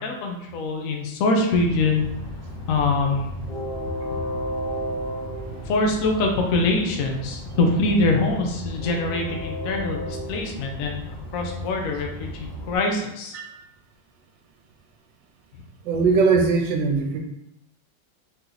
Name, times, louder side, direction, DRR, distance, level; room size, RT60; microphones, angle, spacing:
voice 1, 0.0-2.1 2.7-3.3 5.7-11.0 11.3-13.4, left 3 dB, 60° left, 2 dB, 1.0 m, -24 dB
Train, 1.5-12.8, equal, 5° left, 1.0 m, -33 dB
voice 2, 15.8-17.2, right 4 dB, 80° right, 4 dB, 1.3 m, -20 dB
4.0 x 2.9 x 3.9 m, 0.84 s
omnidirectional pair, 2.0 m